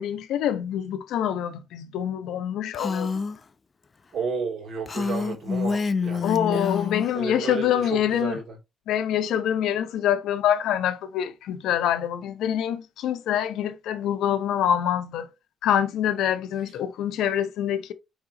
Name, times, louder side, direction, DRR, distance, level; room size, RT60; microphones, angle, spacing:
voice 1, 0.0-3.1 6.2-8.4 8.9-15.3 15.6-17.9, left 10 dB, 85° left, 0.6 m, -25 dB
Female speech woman speaking, 2.7-3.4 4.9-7.1, left 5 dB, 35° left, 0.4 m, -27 dB
voice 2, 4.1-6.8 7.1-8.6, right 5 dB, 60° right, 2.1 m, -32 dB
4.7 x 3.5 x 2.6 m
cardioid pair, 90°, 0 cm